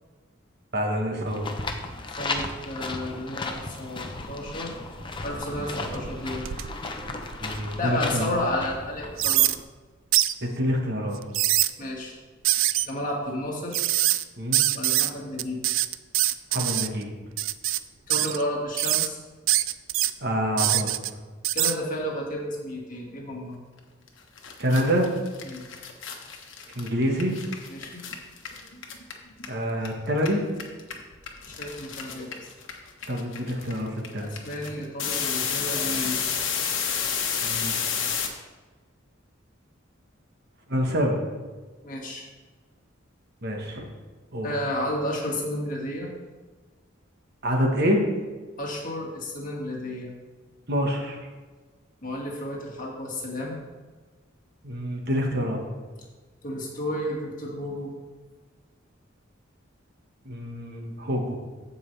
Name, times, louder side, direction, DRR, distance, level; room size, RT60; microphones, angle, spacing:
voice 1, 0.7-1.5 7.4-8.3 10.4-11.2 14.4-14.6 16.5-17.1 20.2-21.0 24.6-25.1 26.7-27.3 29.5-30.4 33.1-34.3 37.4-37.8 40.7-41.2 43.4-43.9 44.3-44.5 47.4-48.0 50.7-51.2 54.6-55.6 60.2-61.4, equal, 55° right, 1 dB, 1.4 m, -26 dB
sound 1, 1.3-9.6, left 3 dB, 25° left, 0.7 m, -35 dB
voice 2, 2.1-4.7 5.2-6.5 7.8-9.5 11.8-12.2 12.8-13.8 14.7-15.6 18.1-19.2 21.5-23.6 25.4-25.7 27.7-28.0 31.5-32.5 34.2-36.2 41.8-42.3 44.4-46.1 48.6-50.1 52.0-53.6 56.4-57.9, left 1 dB, 40° left, -2 dB, 2.0 m, -32 dB
sound 2, 4.3-4.8 5.2-7.9 8.4-8.5 9.2-9.6 10.1-10.3 11.2-11.7 12.4-12.9 13.7-14.2 14.5-15.1 15.4-16.9 17.4-17.8 18.1-18.4 18.7-19.1 19.5-20.1 20.6-21.1 21.4-21.7, right 15 dB, 75° right, 0.4 m, -24 dB
sound 3, 24.1-24.2 24.4-29.9 30.1-38.3, left 7 dB, 65° left, 1.2 m, -30 dB
15.0 x 5.4 x 3.4 m, 1.4 s
head